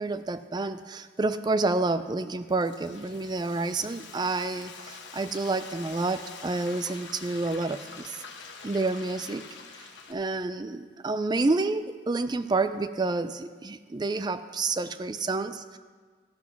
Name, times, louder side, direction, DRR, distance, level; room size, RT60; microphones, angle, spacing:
voice 1, 0.0-8.2 8.6-9.4 10.1-15.8, right 3 dB, 25° right, 11 dB, 0.4 m, -29 dB
Frying (food), 2.2-10.1, left 5 dB, 85° left, 1.1 m, -45 dB
14.5 x 6.1 x 5.9 m, 1.5 s
head